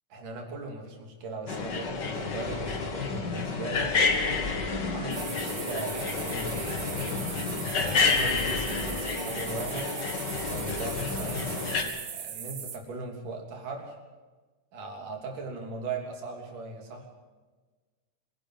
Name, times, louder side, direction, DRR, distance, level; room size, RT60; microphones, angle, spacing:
voice 1, 0.1-4.0 4.5-10.0 10.5-14.0 14.7-17.1, right 3 dB, 75° right, 2 dB, 4.8 m, -39 dB
sound 1, 1.5-11.8, left 4 dB, 40° left, 2.1 m, -29 dB
sound 2, 5.1-12.8, right 8 dB, 60° right, 2.7 m, -39 dB
25.5 x 11.0 x 9.5 m, 1.3 s
omnidirectional pair, 3.7 m